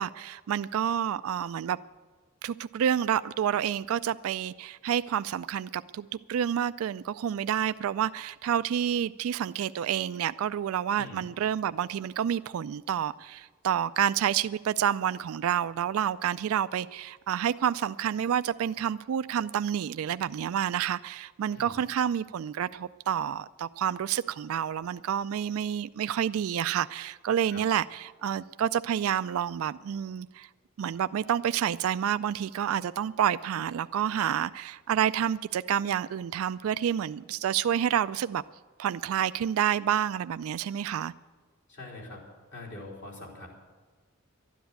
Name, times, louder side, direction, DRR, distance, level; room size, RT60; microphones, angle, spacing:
voice 1, 0.0-1.8 2.4-30.5 30.8-38.4 38.8-41.1, right 9 dB, 80° right, 15 dB, 0.3 m, -29 dB
voice 2, 41.7-42.2 42.5-43.5, left 2 dB, 60° left, -2 dB, 3.8 m, -43 dB
12.5 x 10.5 x 8.3 m, 1.4 s
head